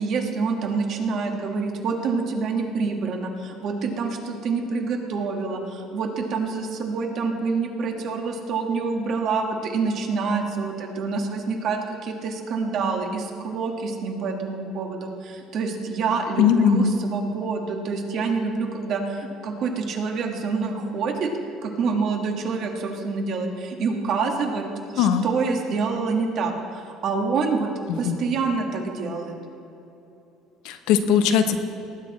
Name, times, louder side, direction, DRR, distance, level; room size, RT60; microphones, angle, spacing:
voice 1, 0.0-21.3 21.6-24.6 24.9-27.7 28.0-29.4, right 4 dB, 55° right, 2 dB, 1.8 m, -27 dB
voice 2, 16.4-16.9 25.0-25.2 27.9-28.1 30.6-31.6, left 8 dB, 80° left, 8 dB, 0.9 m, -19 dB
19.0 x 8.5 x 4.3 m, 3.0 s
cardioid pair, 120°, 0 cm